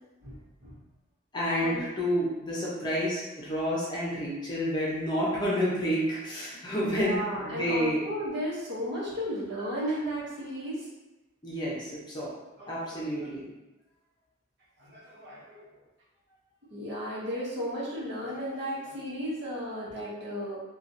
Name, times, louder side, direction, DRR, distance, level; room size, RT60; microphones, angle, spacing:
voice 1, 0.2-0.8 1.6-1.9 6.8-10.9 12.6-13.3 14.8-15.7 16.7-20.6, equal, 60° right, -7 dB, 1.0 m, -34 dB
voice 2, 1.3-8.0 11.4-12.3 12.7-13.5, equal, 25° left, -7 dB, 0.7 m, -29 dB
2.8 x 2.4 x 2.6 m, 1.0 s
head